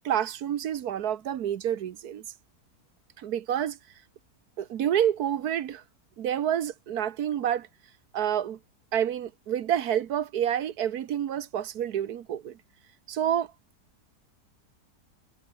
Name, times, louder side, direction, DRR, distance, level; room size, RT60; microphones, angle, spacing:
voice 1, 0.0-2.2 3.2-3.8 4.6-5.8 6.2-7.7 8.1-8.6 8.9-12.6 13.1-13.5, right 10 dB, 70° right, 1.4 m, -28 dB
omnidirectional pair, 1.8 m